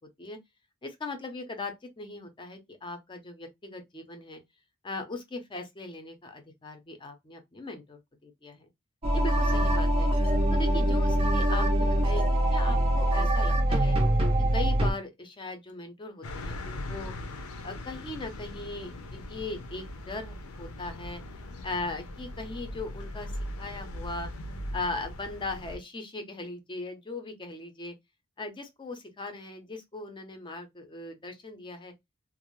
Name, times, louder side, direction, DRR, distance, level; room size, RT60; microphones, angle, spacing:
voice 1, 0.8-4.4 4.8-8.7 9.1-10.1 10.5-12.2 12.5-14.0 14.5-17.1 17.6-21.2 21.6-24.3 24.7-27.9 28.4-31.9, left 2 dB, 20° left, 0.5 m, -39 dB
sound 1, 9.0-14.9, right 1 dB, 25° right, 0.5 m, -24 dB
sound 2, 16.2-25.8, left 1 dB, 75° left, 0.6 m, -40 dB
2.4 x 2.0 x 3.0 m
head